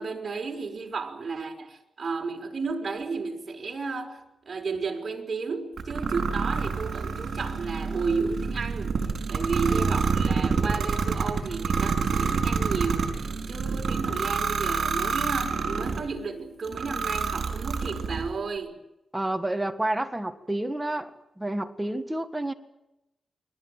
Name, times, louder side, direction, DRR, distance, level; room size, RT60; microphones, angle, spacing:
voice 1, 0.0-18.8, right 4 dB, 40° right, 5.3 m, -33 dB
sound 1, 5.8-16.1 16.6-18.3, right 5 dB, 55° right, 5.3 m, -27 dB
voice 2, 9.6-10.1 19.1-22.5, right 1 dB, 10° right, 1.7 m, -30 dB
29.5 x 22.5 x 7.8 m
wide cardioid pair, 150°, 0 cm